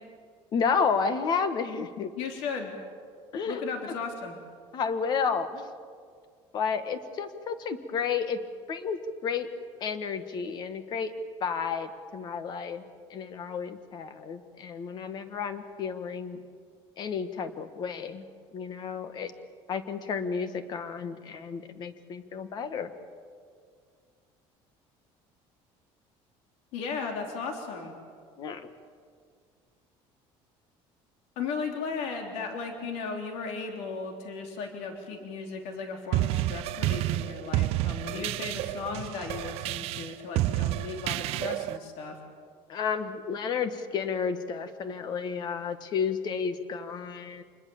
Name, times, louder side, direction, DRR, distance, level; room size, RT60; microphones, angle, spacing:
voice 1, 0.5-2.1 3.3-3.6 4.7-5.7 6.5-8.4 8.7-9.5 9.8-11.1 11.4-12.8 13.1-16.4 17.0-18.2 18.5-19.3 19.7-22.9 28.4-28.7 38.1-38.3 42.7-47.4, left 6 dB, 40° left, 10 dB, 1.5 m, -31 dB
voice 2, 2.1-2.7 3.4-4.4 26.7-27.9 31.4-42.1, left 5 dB, 70° left, 3 dB, 3.4 m, -36 dB
sound 1, 36.1-41.8, right 16 dB, 60° right, 0.6 m, -30 dB
27.0 x 21.0 x 7.1 m, 2.1 s
cardioid pair, 170°, 11 cm